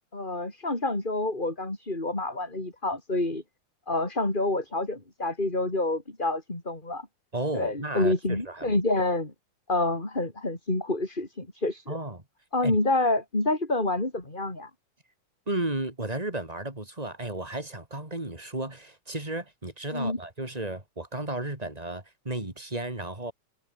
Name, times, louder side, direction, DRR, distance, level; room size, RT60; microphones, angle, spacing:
voice 1, 0.1-3.4 3.9-7.1 7.5-9.3 9.7-12.0 12.5-14.7 19.9-20.2, left 2 dB, 15° left, 4.5 m, -28 dB
voice 2, 7.3-8.8 11.9-12.2 12.6-12.7 15.5-23.3, right 2 dB, 10° right, 4.3 m, -34 dB
omnidirectional pair, 3.8 m